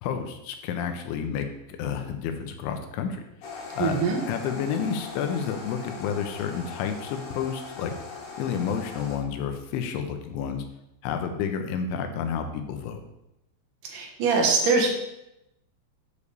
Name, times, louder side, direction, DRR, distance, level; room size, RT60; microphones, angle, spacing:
voice 1, 0.0-7.9 8.4-10.6 11.0-13.0, left 7 dB, 85° left, 6 dB, 3.3 m, -30 dB
sound 1, 3.4-9.2, left 3 dB, 65° left, 3.8 m, -40 dB
voice 2, 3.8-4.2 13.8-14.9, right 4 dB, 65° right, 1 dB, 2.3 m, -23 dB
8.1 x 5.2 x 6.8 m, 0.87 s
omnidirectional pair, 5.4 m